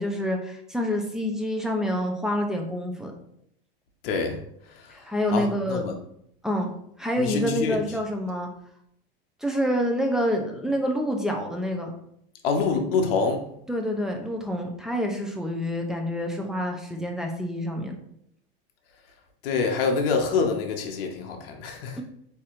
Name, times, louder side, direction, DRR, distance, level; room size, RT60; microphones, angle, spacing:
voice 1, 0.0-3.1 4.9-5.9 6.4-8.5 9.4-11.9 13.7-18.0 21.9-22.0, equal, ahead, 1 dB, 0.5 m, -27 dB
voice 2, 4.0-4.4 5.3-6.0 7.2-7.8 12.4-13.4 19.4-22.0, left 4 dB, 70° left, 3 dB, 0.6 m, -26 dB
4.1 x 2.7 x 2.4 m, 0.73 s
hypercardioid pair, 100°, 29 cm